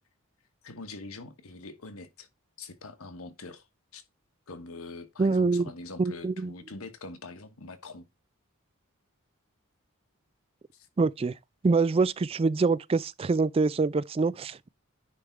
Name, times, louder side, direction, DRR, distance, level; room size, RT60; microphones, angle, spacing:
voice 1, 0.6-2.3 2.6-3.7 3.9-4.0 4.5-8.1 10.7-10.9, left 3 dB, 85° left, 1.2 m, -44 dB
voice 2, 5.2-5.7 6.0-6.5 11.0-11.3 11.6-14.7, right 4 dB, 25° right, 0.3 m, -25 dB
9.8 x 3.5 x 4.6 m
head